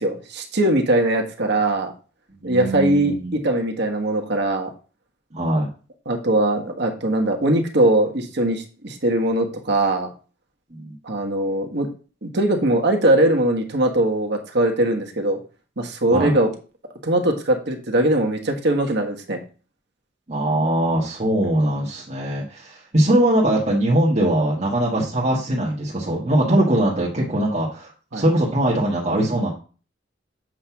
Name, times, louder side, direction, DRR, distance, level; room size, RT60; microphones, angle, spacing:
voice 1, 0.0-1.9 2.4-4.7 6.0-10.1 11.0-11.9 12.2-15.4 15.8-16.5 17.0-19.4 28.1-28.2, right 1 dB, 60° right, 3 dB, 1.4 m, -21 dB
voice 2, 2.4-3.3 5.3-5.7 10.7-10.9 16.1-16.3 20.3-29.5, right 1 dB, 40° right, -5 dB, 1.6 m, -21 dB
7.7 x 3.3 x 5.9 m, 0.37 s
head